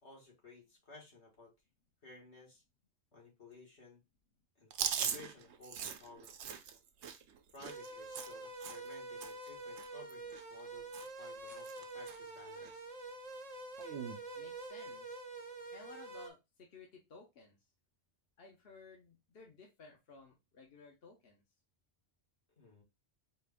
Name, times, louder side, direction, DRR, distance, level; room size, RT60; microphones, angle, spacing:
voice 1, 0.0-1.5 2.0-2.6 3.1-4.0 4.6-6.3 7.5-12.9 22.6-22.8, left 3 dB, 75° left, -2 dB, 2.1 m, -56 dB
Chewing mastication, 4.7-8.9 9.2-9.5 9.8-10.7 10.9-11.2 11.5-12.2 12.6-12.7 13.8-14.2, right 8 dB, 80° right, 0.9 m, -41 dB
sound 1, 7.6-16.3, right 2 dB, 40° right, 0.6 m, -47 dB
voice 2, 14.3-15.2 15.7-17.6 18.4-21.4, left 3 dB, 60° left, 1 dB, 1.0 m, -57 dB
4.4 x 2.5 x 3.4 m, 0.23 s
omnidirectional pair, 1.1 m